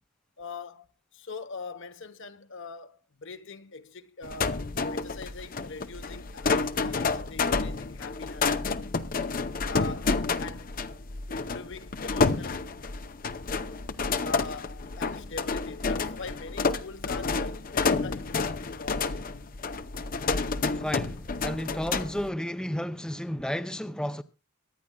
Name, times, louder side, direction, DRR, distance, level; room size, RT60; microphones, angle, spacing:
voice 1, 0.4-8.6 9.6-10.7 11.3-12.7 14.2-19.3, left 4 dB, 60° left, 1.1 m, -43 dB
sound 1, 4.2-22.3, left 4 dB, 40° left, 0.7 m, -30 dB
voice 2, 20.7-24.2, equal, 5° left, 0.5 m, -32 dB
23.5 x 10.5 x 2.3 m
head